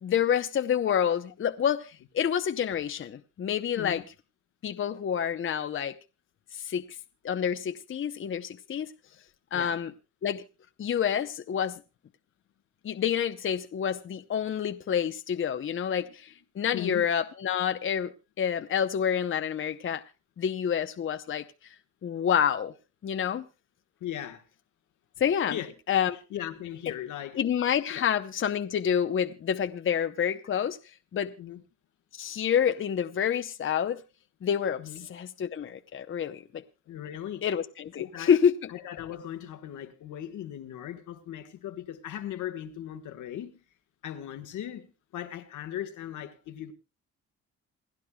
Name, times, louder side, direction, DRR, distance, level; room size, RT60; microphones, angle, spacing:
voice 1, 0.0-4.0 4.6-6.0 6.5-6.8 7.2-8.9 9.5-9.9 10.2-10.4 10.8-11.8 12.8-20.0 20.4-21.4 22.0-22.7 23.0-23.4 25.2-25.6 25.9-26.2 27.4-30.8 31.1-31.3 32.2-34.0 34.4-34.8 35.1-36.6 37.4-38.5, left 8 dB, 45° left, 0.7 m, -28 dB
voice 2, 3.7-4.1 9.5-9.8 15.7-16.1 16.7-17.1 24.0-24.4 25.5-25.7 26.3-27.4 27.9-28.2 31.4-31.6 34.8-35.1 36.9-37.5 37.9-38.4 38.7-43.5 44.0-44.9 45.1-46.7, left 11 dB, 80° left, 1.4 m, -38 dB
28.0 x 10.5 x 2.3 m
cardioid pair, 90°, 30 cm